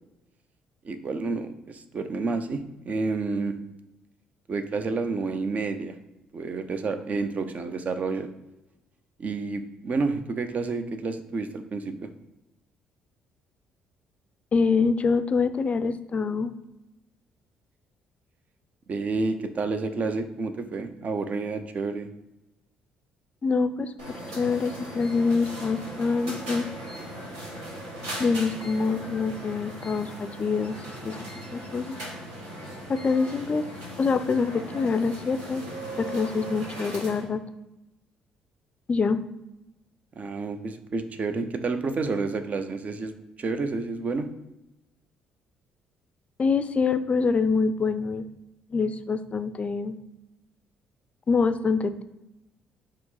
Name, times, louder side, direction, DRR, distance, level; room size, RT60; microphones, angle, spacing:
voice 1, 0.8-3.5 4.5-5.9 6.3-8.3 9.2-12.1 18.9-22.1 40.2-43.1 43.4-44.3, right 4 dB, 45° right, 8 dB, 0.5 m, -29 dB
voice 2, 14.5-16.5 23.4-26.7 28.2-30.8 31.0-31.2 31.5-32.0 32.9-33.6 34.0-35.6 36.0-37.4 38.9-39.2 46.4-48.3 48.7-50.0 51.3-52.0, left 4 dB, 40° left, 11 dB, 0.4 m, -25 dB
sound 1, 24.0-37.3, right 1 dB, 80° right, 1.2 m, -38 dB
4.4 x 2.0 x 3.9 m, 0.98 s
hypercardioid pair, 50°, 4 cm